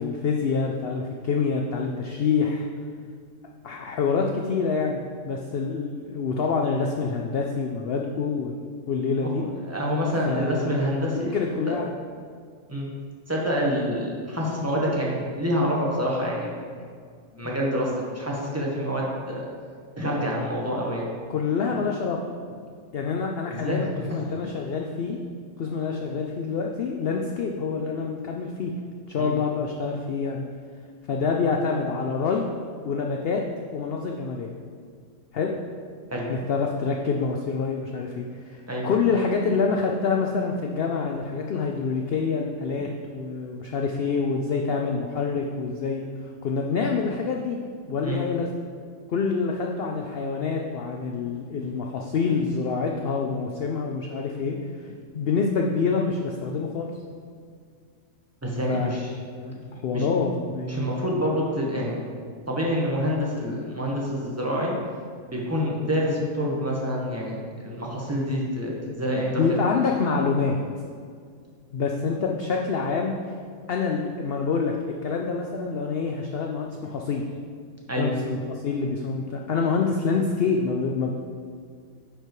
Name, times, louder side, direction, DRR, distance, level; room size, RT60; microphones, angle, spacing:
voice 1, 0.0-2.7 3.6-5.0 5.3-9.4 10.3-10.7 11.3-11.9 21.3-22.2 22.9-25.2 25.6-28.7 29.1-30.4 31.1-32.5 32.8-33.4 33.7-34.5 35.3-35.5 36.3-46.1 46.4-47.6 47.9-48.5 49.1-54.9 55.1-56.9 58.7-59.0 59.4-60.8 68.9-69.0 69.4-70.6 71.7-73.4 73.7-74.8 75.0-77.2 78.0-81.1, left 5 dB, 65° left, 1 dB, 0.6 m, -26 dB
voice 2, 9.6-11.3 11.7-11.8 12.7-12.9 13.3-16.5 17.3-19.4 20.0-21.1 23.5-24.2 29.2-29.3 36.1-36.3 38.7-38.9 48.0-48.2 58.4-59.1 59.9-60.1 60.7-62.0 62.5-64.7 65.3-69.7 77.9-78.1, equal, 10° right, -4 dB, 1.1 m, -27 dB
9.8 x 5.1 x 3.1 m, 2.1 s
omnidirectional pair, 1.5 m